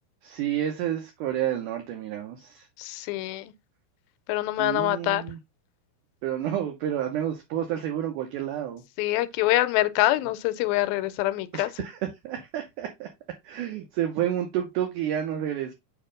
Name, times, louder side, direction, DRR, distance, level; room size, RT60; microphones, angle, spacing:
voice 1, 0.2-2.7 4.6-5.4 6.2-8.8 11.5-13.1 13.4-15.7, right 11 dB, 70° right, 2.2 m, -30 dB
voice 2, 2.8-3.5 4.3-5.2 9.0-11.7, left 16 dB, 85° left, 2.3 m, -25 dB
6.7 x 3.0 x 5.0 m
omnidirectional pair, 4.2 m